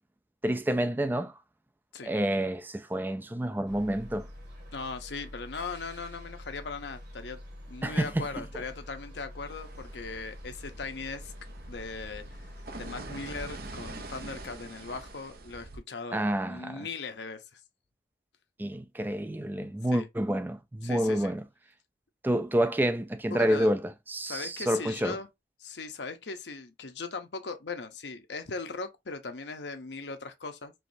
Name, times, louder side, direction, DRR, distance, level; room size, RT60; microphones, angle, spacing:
voice 1, 0.4-1.3 2.0-4.3 7.8-8.3 16.1-16.9 18.6-21.4 22.2-23.8 24.1-25.2, right 1 dB, 10° right, 0.3 m, -28 dB
sound 1, 3.7-14.5, equal, 75° right, 2.2 m, -46 dB
voice 2, 4.7-7.4 7.7-11.3 11.7-12.5 12.8-17.6 19.9-20.1 20.8-21.3 23.3-23.8 24.2-25.3 25.6-30.7, left 4 dB, 80° left, 0.8 m, -39 dB
sound 2, 9.5-15.8, right 2 dB, 55° right, 0.6 m, -45 dB
4.7 x 3.1 x 2.6 m
head